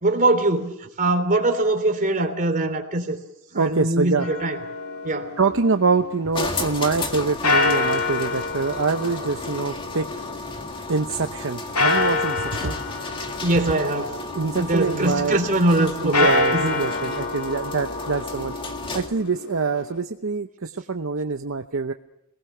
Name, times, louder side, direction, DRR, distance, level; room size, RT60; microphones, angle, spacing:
voice 1, 0.0-3.2 3.5-4.6 5.0-5.3 13.4-14.2 14.6-16.8, right 2 dB, 40° right, 5 dB, 3.3 m, -22 dB
voice 2, 3.5-4.3 5.4-10.1 10.9-12.8 14.3-15.4 16.0-18.5 18.9-21.9, right 4 dB, 60° right, 6 dB, 0.8 m, -24 dB
sound 1, 4.2-6.3 7.4-10.8 11.8-14.7 16.0-20.0, left 3 dB, 90° left, 2.8 m, -26 dB
sound 2, 6.3-19.3, left 2 dB, 25° left, 2.1 m, -33 dB
27.5 x 19.5 x 6.8 m, 0.79 s
head